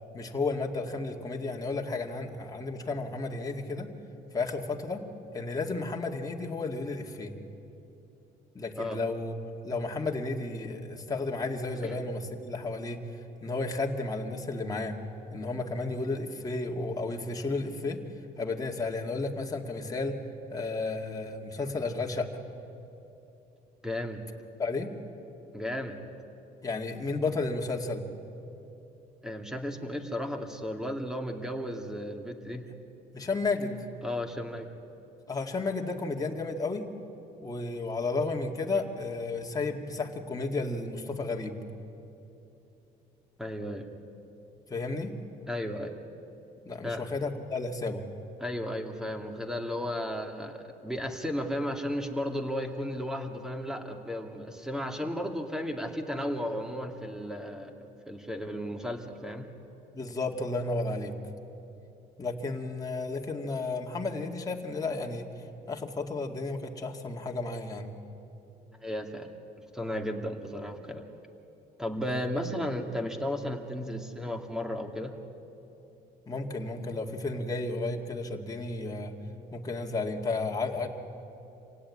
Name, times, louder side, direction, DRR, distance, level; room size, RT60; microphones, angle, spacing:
voice 1, 0.1-3.9 4.3-5.0 5.3-7.3 8.5-9.3 9.6-13.0 13.4-14.9 15.3-18.0 18.4-20.2 20.5-22.3 24.6-24.9 26.6-28.0 33.1-33.9 35.3-36.9 37.4-41.6 44.7-45.1 46.7-48.0 55.0-55.1 59.9-61.1 62.2-65.3 65.7-67.9 72.1-72.3 76.3-79.1 79.5-80.9, left 3 dB, 20° left, 1 dB, 2.2 m, -32 dB
voice 2, 23.8-24.2 25.5-26.0 29.2-32.7 34.0-34.7 43.4-43.9 45.5-45.9 46.8-47.0 48.4-50.6 50.8-59.5 68.8-69.3 69.7-71.1 71.8-75.1, equal, 5° right, 5 dB, 2.3 m, -34 dB
27.0 x 17.0 x 9.8 m, 3.0 s
cardioid pair, 110°, 17 cm